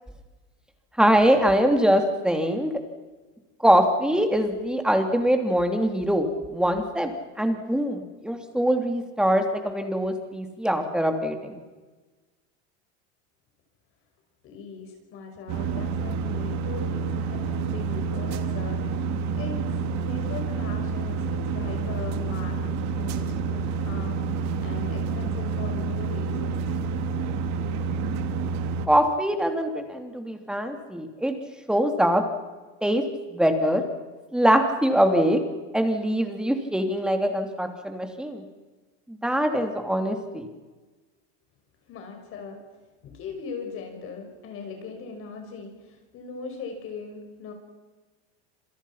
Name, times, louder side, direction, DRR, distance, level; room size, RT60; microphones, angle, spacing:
voice 1, 1.0-2.7 3.6-7.1 7.4-11.6 28.8-31.3 31.7-32.2 32.8-33.0 33.3-33.8 34.3-35.4 35.7-38.4 39.1-40.5, equal, ahead, 5 dB, 3.1 m, -23 dB
voice 2, 14.4-19.0 19.4-19.6 19.9-22.6 22.9-24.3 24.6-26.6 27.0-27.2 41.9-42.6 43.0-45.8 46.1-47.5, left 5 dB, 40° left, 3 dB, 5.6 m, -39 dB
sound 1, 15.5-28.9, right 5 dB, 55° right, 2.8 m, -28 dB
27.5 x 27.5 x 5.9 m, 1.3 s
supercardioid pair, 145°, 33 cm